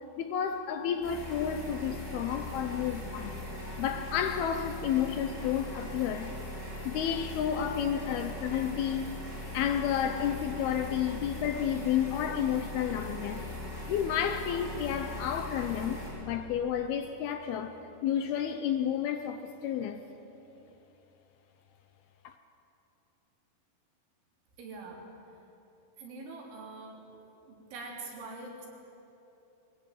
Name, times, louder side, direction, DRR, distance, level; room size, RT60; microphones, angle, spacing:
voice 1, 0.2-3.4 3.8-6.3 6.8-9.2 9.5-13.5 13.9-20.0 22.2-22.4, left 9 dB, 75° left, 2.4 m, -31 dB
sound 1, 1.0-16.1, left 1 dB, 10° left, 7.7 m, -40 dB
voice 2, 24.6-25.0 26.0-27.2 27.5-28.7, right 3 dB, 90° right, 5.9 m, -44 dB
23.0 x 20.0 x 9.2 m
omnidirectional pair, 5.2 m